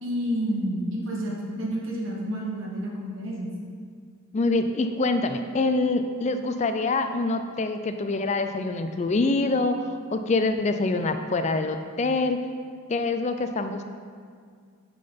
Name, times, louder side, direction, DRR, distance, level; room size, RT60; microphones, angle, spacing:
voice 1, 0.0-3.5, equal, 60° right, -2 dB, 1.2 m, -29 dB
voice 2, 4.3-12.4 12.9-13.8, left 3 dB, 30° left, 8 dB, 0.3 m, -25 dB
9.1 x 3.8 x 5.2 m, 2.1 s
head